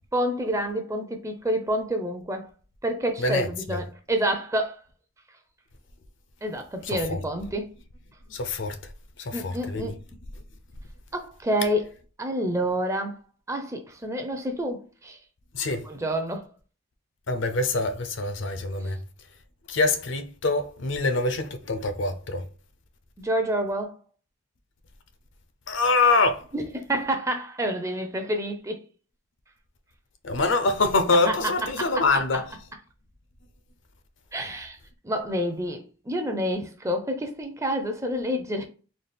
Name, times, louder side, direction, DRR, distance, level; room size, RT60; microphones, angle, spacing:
voice 1, 0.1-2.5 2.8-4.8 6.4-7.7 9.3-10.0 11.1-11.9 12.2-13.2 13.5-15.2 15.9-16.5 23.2-24.0 26.5-28.8 31.1-31.3 31.8-32.0 34.3-34.8 35.0-38.6, right 1 dB, 15° right, 0.5 m, -28 dB
voice 2, 3.2-3.8 6.8-7.2 8.3-8.8 9.2-9.9 15.5-15.9 17.3-19.0 19.7-22.4 25.7-26.5 30.2-32.6, left 3 dB, 65° left, 0.6 m, -25 dB
4.0 x 2.3 x 3.4 m
head